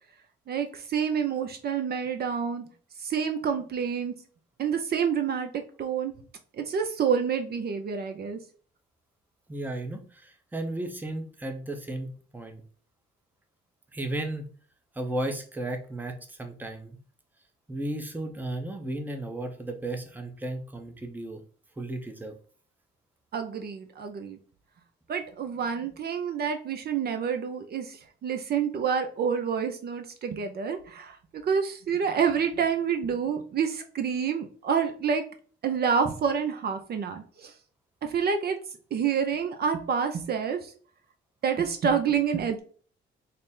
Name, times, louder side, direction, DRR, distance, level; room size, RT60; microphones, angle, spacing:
voice 1, 0.5-2.6 3.0-4.1 4.6-5.5 5.8-6.1 6.6-8.4 23.3-24.4 25.1-35.2 35.6-37.5 38.0-38.6 38.9-40.7 41.4-42.6, right 7 dB, 50° right, 6 dB, 0.6 m, -28 dB
voice 2, 9.5-12.6 13.9-14.4 14.9-17.0 17.7-21.4 21.8-22.3, right 1 dB, 10° right, 5 dB, 0.6 m, -34 dB
4.0 x 2.1 x 3.6 m, 0.43 s
cardioid pair, 90°, 20 cm